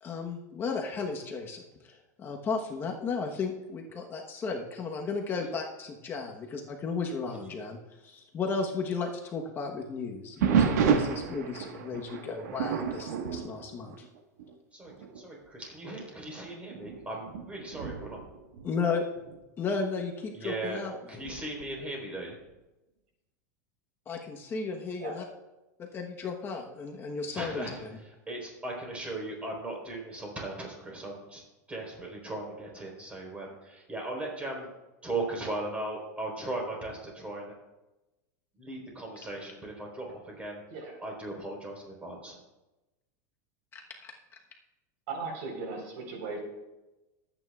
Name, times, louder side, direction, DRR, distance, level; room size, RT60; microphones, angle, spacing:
voice 1, 0.0-7.8 8.0-14.0 18.6-19.1 19.6-20.9 24.1-25.2 25.8-27.7 43.7-44.1, left 4 dB, 25° left, 2 dB, 1.1 m, -34 dB
voice 2, 7.3-7.7 14.7-18.2 20.3-20.8 21.1-22.4 27.3-31.4 31.7-34.7 35.0-37.5 38.5-40.6 41.0-42.4, right 2 dB, 15° right, -1 dB, 3.9 m, -38 dB
sound 1, 10.4-14.5 14.9-15.2 15.8-15.9 16.7-19.4 21.2-21.7, right 7 dB, 85° right, 1.4 m, -30 dB
voice 3, 45.1-46.4, right 4 dB, 65° right, 2 dB, 4.0 m, -37 dB
22.0 x 9.1 x 2.4 m, 1.0 s
supercardioid pair, 140°, 9 cm